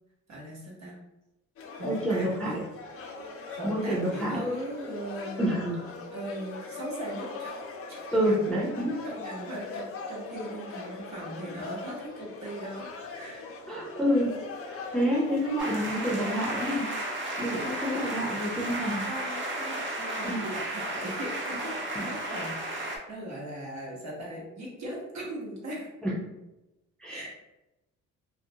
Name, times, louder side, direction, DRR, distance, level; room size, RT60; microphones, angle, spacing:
voice 1, 0.3-1.0 1.7-2.6 3.5-5.5 6.1-7.6 7.9-8.6 9.0-13.4 15.4-15.5 17.5-17.9 19.1-21.7 22.0-25.9 27.1-27.3, equal, 65° right, -4 dB, 1.0 m, -39 dB
sound 1, 1.6-16.8, left 3 dB, 50° left, 0.5 m, -41 dB
voice 2, 1.8-2.6 3.6-4.4 5.4-5.8 8.1-9.0 13.7-14.4 14.7-16.9 17.4-19.0 20.2-20.5 22.0-22.1 26.0-26.2 27.0-27.3, equal, 5° left, -5 dB, 0.5 m, -28 dB
sound 2, 15.6-23.0, right 1 dB, 40° right, 0.6 m, -34 dB
2.4 x 2.1 x 2.7 m, 0.97 s
cardioid pair, 90°, 30 cm